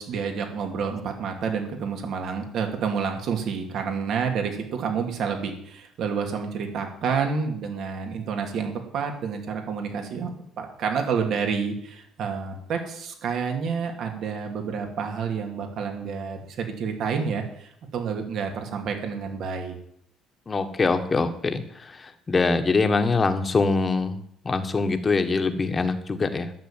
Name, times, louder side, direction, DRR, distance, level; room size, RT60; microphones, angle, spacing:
voice 1, 0.0-19.8, right 6 dB, 65° right, 4 dB, 2.7 m, -29 dB
voice 2, 20.5-24.2 24.4-26.5, left 4 dB, 30° left, 8 dB, 1.5 m, -24 dB
12.0 x 6.8 x 9.1 m, 0.69 s
cardioid pair, 95°, 0 cm